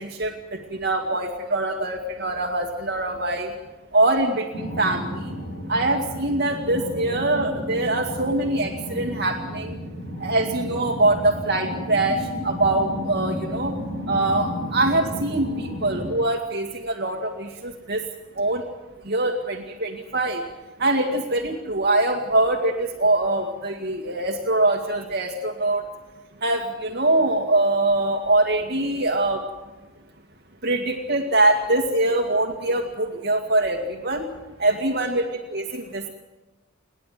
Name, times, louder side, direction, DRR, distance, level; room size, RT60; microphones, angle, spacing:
voice 1, 0.0-3.5 3.9-5.1 5.7-9.8 10.2-12.2 12.4-13.7 14.1-18.0 18.4-18.6 19.1-20.4 20.8-25.8 26.4-29.4 30.6-34.3 34.6-36.1, right 2 dB, 50° right, 3 dB, 2.1 m, -23 dB
sound 1, 4.5-16.1, equal, 35° left, 6.6 m, -33 dB
30.0 x 11.0 x 9.4 m, 1.2 s
head